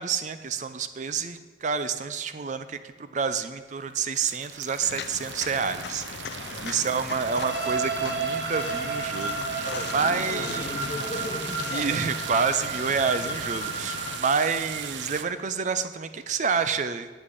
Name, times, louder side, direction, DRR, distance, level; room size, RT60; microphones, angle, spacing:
voice 1, 0.0-10.7 11.7-17.1, right 5 dB, 40° right, 11 dB, 0.4 m, -28 dB
sound 1, 3.8-15.2, right 8 dB, 85° right, 0.7 m, -38 dB
Walk footsteps, 4.8-14.2, left 6 dB, 65° left, 0.4 m, -39 dB
voice 2, 6.3-6.7 9.6-12.0 13.6-13.8, left 1 dB, 35° left, 3 dB, 1.5 m, -37 dB
sound 2, 7.3-15.1, right 3 dB, 70° right, 1.5 m, -33 dB
8.3 x 7.7 x 8.4 m, 1.4 s
head